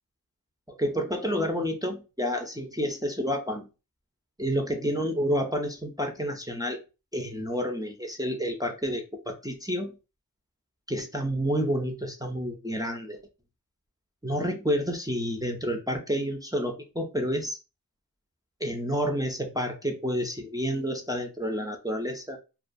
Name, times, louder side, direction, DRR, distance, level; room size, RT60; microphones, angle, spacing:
voice 1, 0.7-3.7 4.4-6.8 7.1-10.0 10.9-13.2 14.2-17.6 18.6-22.4, equal, 10° right, 2 dB, 0.4 m, -29 dB
2.4 x 2.2 x 2.5 m, 0.30 s
wide cardioid pair, 45°, 36 cm